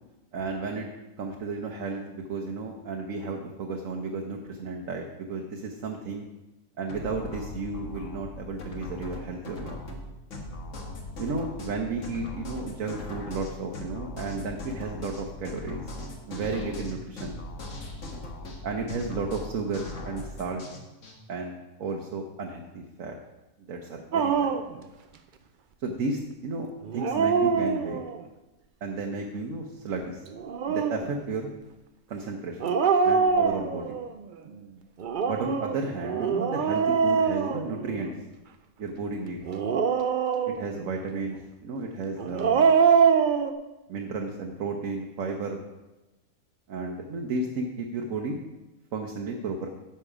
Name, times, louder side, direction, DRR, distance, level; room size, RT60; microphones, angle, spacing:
voice 1, 0.3-0.9 1.2-6.2 6.8-9.8 11.2-15.9 16.3-17.4 18.6-20.6 21.3-23.1 23.7-24.5 25.8-28.0 28.8-30.2 30.7-31.5 32.1-32.7 33.0-34.0 35.2-38.1 38.8-39.4 40.5-41.4 41.6-42.7 43.9-45.6 46.7-48.4 48.9-49.7, right 3 dB, 65° right, 1 dB, 1.2 m, -33 dB
sound 1, 6.9-21.2, left 2 dB, 55° left, 1.6 m, -39 dB
Dog, 24.1-24.8 26.8-28.2 30.3-31.1 32.6-34.1 35.0-38.2 39.4-40.8 42.2-43.5, right 6 dB, 80° right, 0.4 m, -24 dB
10.0 x 6.7 x 4.9 m, 1.0 s
omnidirectional pair, 1.6 m